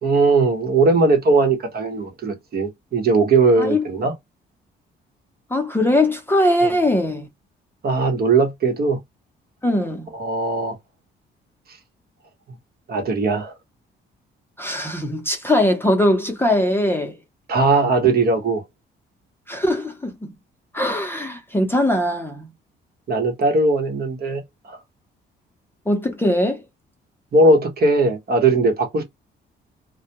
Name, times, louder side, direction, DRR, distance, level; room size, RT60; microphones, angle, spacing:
voice 1, 0.0-4.1 6.6-6.8 7.8-9.0 10.1-10.8 12.9-13.5 17.5-18.6 23.1-24.8 27.3-29.0, right 3 dB, 50° right, 1.0 m, -19 dB
voice 2, 5.5-7.3 9.6-10.1 14.6-17.2 19.5-20.3 20.7-22.5 25.9-26.6, left 1 dB, 10° left, 0.7 m, -20 dB
2.2 x 2.2 x 2.8 m
cardioid pair, 90°, 20 cm